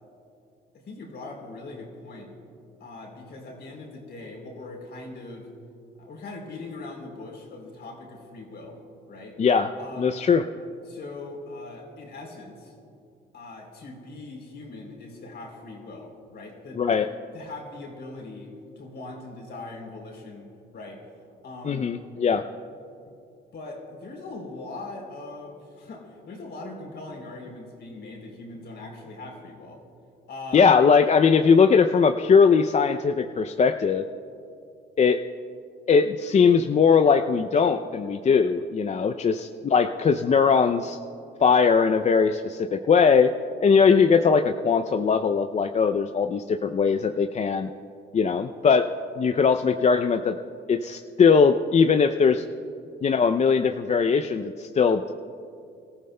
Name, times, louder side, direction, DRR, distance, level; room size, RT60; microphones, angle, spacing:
voice 1, 0.7-2.3 2.8-5.5 6.0-8.8 9.1-9.4 9.8-10.2 10.8-12.7 13.3-20.5 20.7-21.1 21.4-21.9 23.1-23.2 23.5-29.8 30.3-30.7, left 2 dB, 60° left, 0 dB, 3.4 m, -41 dB
voice 2, 9.4-9.7 10.0-10.4 16.8-17.1 21.6-22.4 30.5-34.0 35.0-35.2 35.9-41.0 41.4-43.3 43.6-47.7 48.1-48.9 49.2-50.4 50.7-52.4 53.0-55.1, left 5 dB, 35° left, 7 dB, 0.5 m, -20 dB
27.0 x 14.5 x 2.2 m, 2.6 s
cardioid pair, 90°, 20 cm